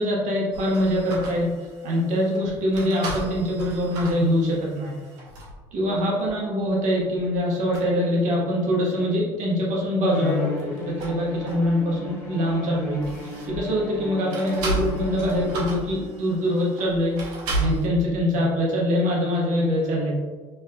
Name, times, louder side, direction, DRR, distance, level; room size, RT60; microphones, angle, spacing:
voice 1, 0.0-1.5 1.8-5.0 5.7-13.2 13.5-20.1, equal, 60° right, -3 dB, 1.2 m, -24 dB
sound 1, 0.5-5.6 6.2-6.3 7.0-7.4 7.7-7.9 10.5-11.9 12.3-13.8 14.3-17.9, right 2 dB, 80° right, 1.1 m, -34 dB
Bowed string instrument, 10.1-16.1, left 4 dB, 20° left, 1.5 m, -36 dB
5.5 x 2.6 x 2.3 m, 1.4 s
supercardioid pair, 85°, 15 cm